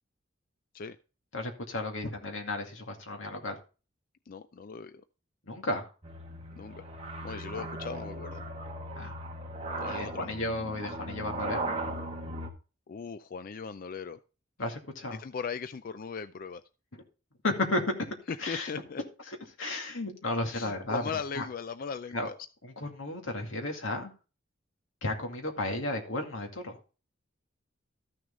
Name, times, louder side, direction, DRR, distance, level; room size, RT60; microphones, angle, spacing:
voice 1, 1.3-3.6 5.4-5.9 7.5-7.7 9.0-9.1 9.9-11.7 14.6-15.2 16.9-17.0 17.4-17.8 18.4-18.7 19.3-21.5 22.1-22.3 22.6-24.1 25.0-26.8, left 2 dB, 85° left, 2.3 m, -33 dB
voice 2, 4.3-5.0 6.5-6.8 7.2-8.4 9.8-10.4 12.9-14.2 15.1-16.6 18.3-19.0 20.5-22.4, left 5 dB, 45° left, 0.4 m, -38 dB
sound 1, 6.0-12.5, right 1 dB, 30° right, 1.6 m, -38 dB
13.5 x 6.3 x 3.7 m
head